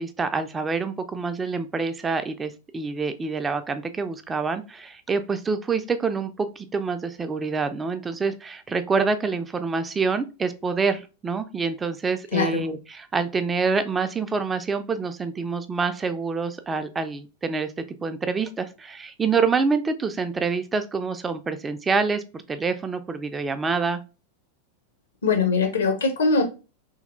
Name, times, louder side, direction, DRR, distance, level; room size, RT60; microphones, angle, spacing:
voice 1, 0.0-17.7 18.0-24.0, right 4 dB, 15° right, 9 dB, 0.3 m, -26 dB
voice 2, 12.3-12.7 25.2-26.4, left 4 dB, 65° left, 4 dB, 0.8 m, -21 dB
3.1 x 2.8 x 2.5 m, 0.31 s
figure-of-eight pair, 90°, 0 cm